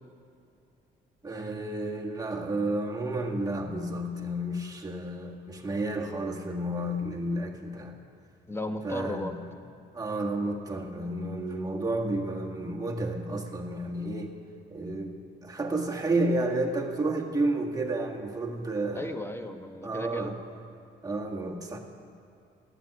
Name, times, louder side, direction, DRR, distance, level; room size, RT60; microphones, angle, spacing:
voice 1, 1.2-8.0 8.8-9.3 9.9-14.3 14.7-19.1 19.8-20.4 21.0-21.8, right 2 dB, 20° right, 0 dB, 1.7 m, -31 dB
voice 2, 8.5-9.4 18.9-20.3, left 1 dB, 10° left, 7 dB, 1.1 m, -35 dB
13.0 x 8.0 x 9.7 m, 2.6 s
cardioid pair, 90°, 20 cm